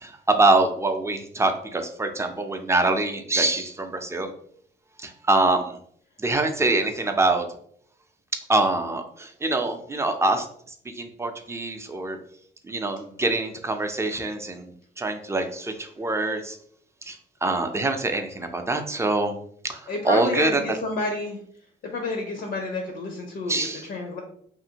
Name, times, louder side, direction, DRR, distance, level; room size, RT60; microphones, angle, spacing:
voice 1, 0.0-4.3 5.0-5.8 6.2-7.4 8.5-10.5 11.0-12.2 12.7-16.6 17.1-17.2 17.4-19.3 19.6-20.6 23.5-23.8, right 2 dB, 15° right, 5 dB, 0.4 m, -24 dB
voice 2, 19.9-21.4 21.9-24.2, left 2 dB, 70° left, 2 dB, 0.6 m, -30 dB
2.7 x 2.5 x 2.8 m, 0.63 s
cardioid pair, 90°, 20 cm